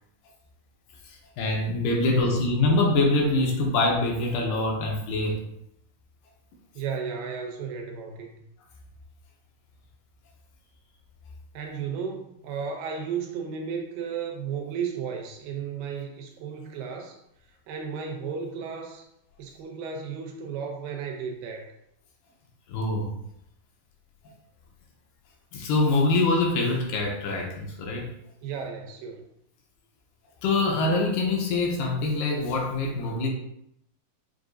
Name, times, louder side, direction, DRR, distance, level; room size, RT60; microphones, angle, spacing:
voice 1, 1.1-5.4 22.7-23.1 25.5-28.1 30.4-33.3, left 2 dB, 80° left, -1 dB, 2.3 m, -24 dB
voice 2, 2.0-2.3 6.8-8.4 11.5-17.2 17.7-19.1 19.4-21.7 28.4-29.3, right 6 dB, 80° right, 2 dB, 2.1 m, -34 dB
6.6 x 2.7 x 2.5 m, 0.76 s
omnidirectional pair, 4.3 m